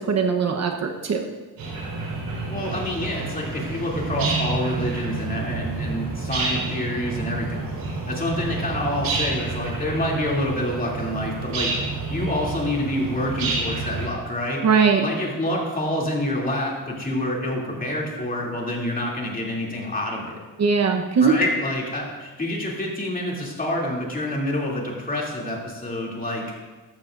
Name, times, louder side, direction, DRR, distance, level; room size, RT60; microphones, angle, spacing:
voice 1, 0.1-1.2 14.6-15.0 20.6-21.3, right 5 dB, 50° right, 3 dB, 0.9 m, -20 dB
sound 1, 1.6-14.1, right 3 dB, 70° right, 4.0 m, -29 dB
voice 2, 2.5-7.6 8.1-11.7 12.1-14.7 15.0-20.4 21.2-26.5, left 1 dB, 25° left, -2 dB, 2.7 m, -27 dB
15.0 x 11.5 x 2.5 m, 1.3 s
cardioid pair, 115°, 35 cm